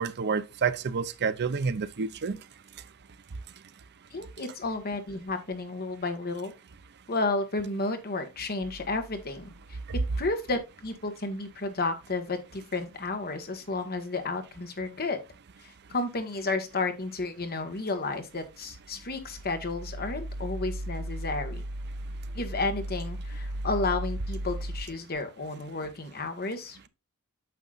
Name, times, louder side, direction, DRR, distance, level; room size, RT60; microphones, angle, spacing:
voice 1, 0.0-2.4, right 5 dB, 50° right, 0.6 m, -29 dB
voice 2, 4.1-6.5 7.1-15.2 15.6-21.6 22.3-26.9, left 3 dB, 45° left, 1.6 m, -32 dB
sound 1, 8.6-10.2 18.7-24.9, right 1 dB, 80° right, 0.9 m, -36 dB
9.2 x 7.0 x 2.5 m
head